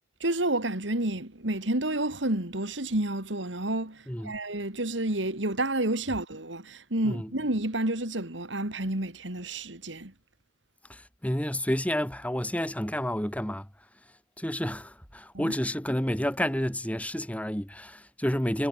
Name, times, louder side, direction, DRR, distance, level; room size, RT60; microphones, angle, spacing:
voice 1, 0.2-10.1 15.3-15.5, right 1 dB, 75° right, 3.4 m, -30 dB
voice 2, 10.9-13.7 14.4-18.7, equal, 10° left, 5.1 m, -30 dB
head